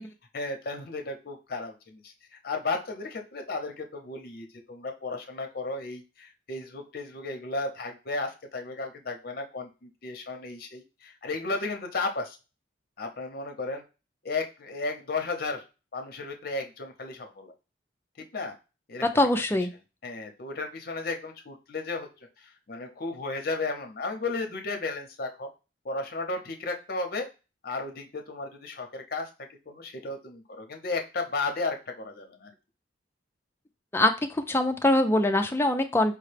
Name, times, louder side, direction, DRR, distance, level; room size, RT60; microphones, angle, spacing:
voice 1, 0.3-12.4 13.0-13.8 14.2-15.6 15.9-17.5 18.3-18.6 18.9-19.3 20.0-25.5 25.8-27.3 27.6-32.5, left 3 dB, 55° left, 4 dB, 0.7 m, -34 dB
voice 2, 19.1-19.7 33.9-36.2, left 1 dB, 15° left, 5 dB, 0.4 m, -23 dB
4.8 x 2.2 x 3.3 m, 0.30 s
head